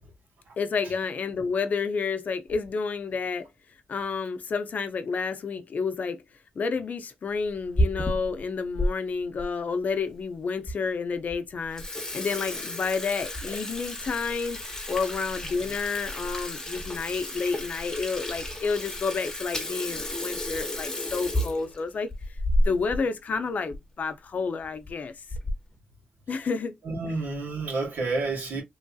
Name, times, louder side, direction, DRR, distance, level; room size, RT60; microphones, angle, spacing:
voice 1, 0.6-3.5 3.9-6.2 6.6-11.8 12.1-14.6 14.9-22.1 22.6-25.1 26.3-26.8, left 5 dB, 60° left, 0.5 m, -30 dB
Water tap faucet / Sink (filling or washing), 7.5-8.9 9.4-9.5 10.2-10.3 10.7-10.8 11.1-11.3 11.6-23.0 23.3-23.4 23.7-23.8 24.6-24.9 25.3-25.7, left 1 dB, 20° left, 0.9 m, -31 dB
voice 2, 26.8-28.6, right 3 dB, 90° right, 1.6 m, -30 dB
3.1 x 2.6 x 2.3 m
wide cardioid pair, 110°, 3 cm